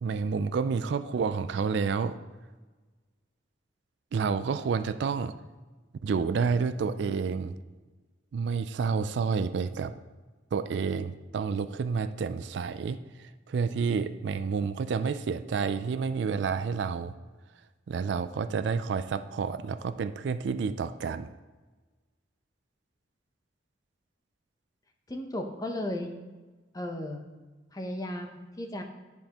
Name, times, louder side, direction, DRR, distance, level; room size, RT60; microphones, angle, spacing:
voice 1, 0.0-2.2 4.1-5.3 6.0-7.5 8.3-9.9 10.5-17.1 17.9-21.3, right 5 dB, 65° right, 11 dB, 0.3 m, -29 dB
voice 2, 25.1-26.1 26.7-27.2 27.7-28.8, left 1 dB, 20° left, 4 dB, 0.6 m, -35 dB
10.5 x 5.3 x 2.9 m, 1.3 s
head